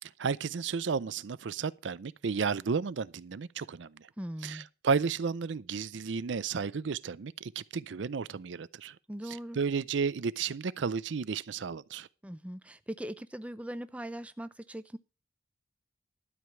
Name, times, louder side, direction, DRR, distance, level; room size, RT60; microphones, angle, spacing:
voice 1, 0.0-4.1 4.4-9.0 9.3-12.1, right 5 dB, 70° right, 0.5 m, -33 dB
voice 2, 4.2-4.7 9.1-9.6 12.2-15.0, right 1 dB, 5° right, 0.5 m, -40 dB
12.5 x 5.0 x 7.8 m
head